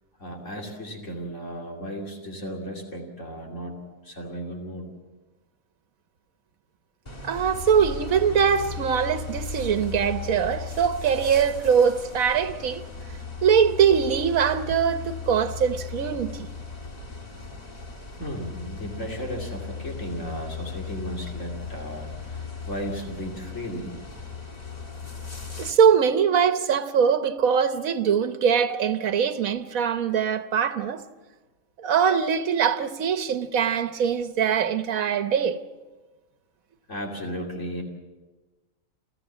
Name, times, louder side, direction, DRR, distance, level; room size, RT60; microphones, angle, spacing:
voice 1, 0.2-4.9 18.2-23.9 36.9-37.8, equal, 65° left, 3.0 m, -35 dB
sound 1, 7.1-25.7, left 4 dB, 30° left, 1.9 m, -37 dB
voice 2, 7.2-12.8 13.4-16.5 25.6-31.0 31.8-35.6, right 7 dB, 90° right, 1.4 m, -22 dB
29.0 x 14.5 x 7.3 m
omnidirectional pair, 1.4 m